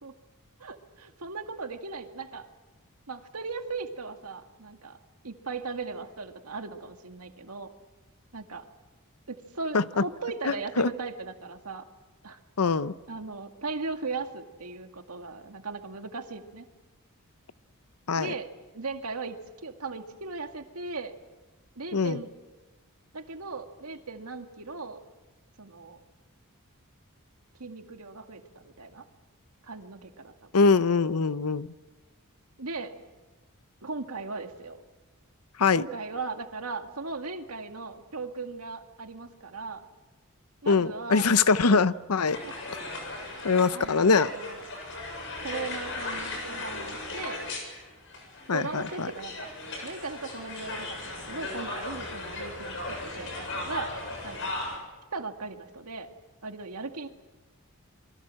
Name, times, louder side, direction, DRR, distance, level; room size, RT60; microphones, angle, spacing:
voice 1, 0.6-2.4 3.1-5.0 5.2-7.7 8.3-8.6 9.3-11.9 12.2-12.4 13.1-16.6 18.2-18.5 18.7-19.4 19.6-21.1 21.8-22.3 23.1-25.0 25.6-26.0 27.6-29.0 29.6-30.7 32.6-32.9 33.8-34.8 35.7-39.8 40.6-41.3 41.7-41.9 42.4-42.5 43.2-44.6 45.4-47.4 48.5-49.5 49.8-54.0 54.2-54.5 55.1-56.1 56.4-57.1, right 4 dB, 85° right, 5 dB, 2.1 m, -38 dB
voice 2, 12.6-12.9 18.1-18.3 21.9-22.2 30.5-31.7 35.6-35.8 40.7-42.4 43.4-44.3 48.5-49.1, left 4 dB, 90° left, 15 dB, 0.8 m, -23 dB
sound 1, 42.3-54.8, left 2 dB, 60° left, 7.5 m, -37 dB
27.5 x 22.5 x 7.7 m, 1.2 s
head